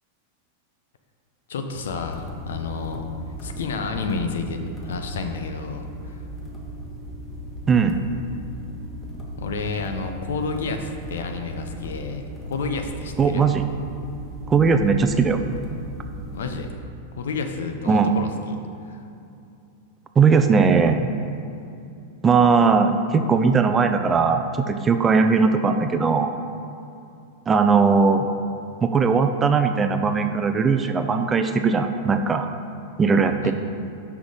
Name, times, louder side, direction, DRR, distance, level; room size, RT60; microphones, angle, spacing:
voice 1, 1.5-3.1 3.4-6.2 9.4-13.5 16.3-16.7 17.1-19.0 33.4-33.5, left 4 dB, 70° left, 6 dB, 0.7 m, -30 dB
sound 1, 1.8-16.7, equal, 20° left, 1.4 m, -37 dB
voice 2, 7.7-8.0 13.2-13.7 14.5-15.4 17.9-18.1 20.2-21.1 22.2-26.3 27.5-28.3 28.8-32.5 33.0-33.5, right 5 dB, 20° right, 7 dB, 0.5 m, -19 dB
6.0 x 5.6 x 5.0 m, 2.7 s
figure-of-eight pair, 95°, 0 cm